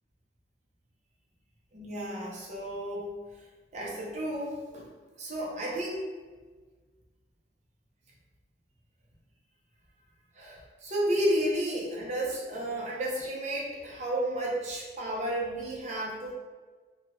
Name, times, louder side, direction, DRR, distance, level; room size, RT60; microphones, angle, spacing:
voice 1, 1.7-3.1 3.7-4.9 5.2-6.0 10.4-16.3, right 1 dB, 40° right, -4 dB, 0.7 m, -32 dB
3.3 x 2.2 x 3.1 m, 1.4 s
head